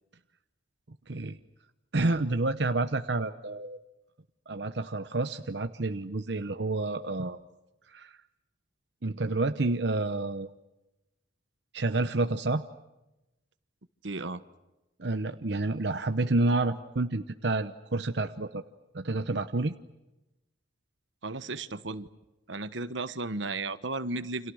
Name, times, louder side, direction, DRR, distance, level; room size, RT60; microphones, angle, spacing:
voice 1, 1.1-1.4 1.9-3.8 4.5-7.4 7.9-8.2 9.0-10.5 11.7-12.6 15.0-18.6 18.9-19.7, right 2 dB, 65° right, 8 dB, 0.9 m, -29 dB
voice 2, 14.0-14.4 21.2-22.1 22.5-24.5, right 3 dB, 80° right, 13 dB, 1.2 m, -34 dB
29.5 x 27.5 x 6.4 m, 0.97 s
head